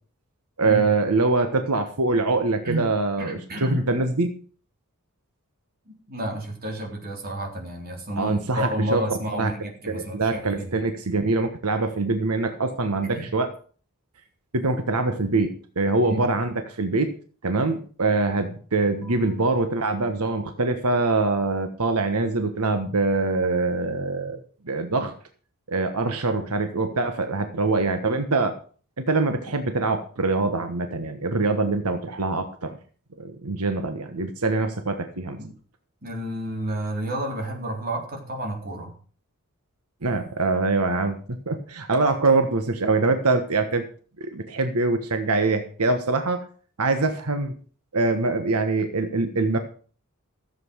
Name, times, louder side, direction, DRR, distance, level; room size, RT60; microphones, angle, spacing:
voice 1, 0.6-4.3 8.2-9.5 9.9-13.5 14.5-17.1 17.4-25.1 25.7-28.6 29.0-32.8 33.2-35.4 40.0-43.9 44.2-46.5 46.8-47.5 47.9-49.6, right 3 dB, 90° right, 7 dB, 1.4 m, -24 dB
voice 2, 3.2-3.8 6.1-10.8 13.0-13.3 16.0-16.3 35.4-35.6 36.0-38.9, right 1 dB, 45° right, 1 dB, 3.8 m, -31 dB
14.5 x 7.9 x 6.3 m, 0.42 s
head